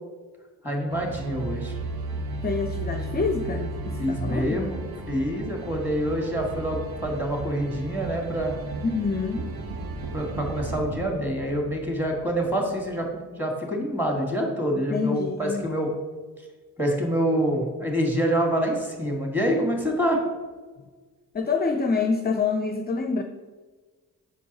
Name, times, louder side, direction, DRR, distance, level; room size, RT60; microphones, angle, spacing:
voice 1, 0.6-1.7 4.0-4.8 5.1-8.5 10.1-15.9 16.8-20.2, equal, 5° right, 0 dB, 2.1 m, -26 dB
sound 1, 0.9-12.9, right 3 dB, 75° right, 1.0 m, -35 dB
voice 2, 2.4-4.6 8.8-9.5 14.7-15.7 21.3-23.2, left 4 dB, 25° left, 6 dB, 0.5 m, -26 dB
6.9 x 4.5 x 4.2 m, 1.3 s
cardioid pair, 55°, 37 cm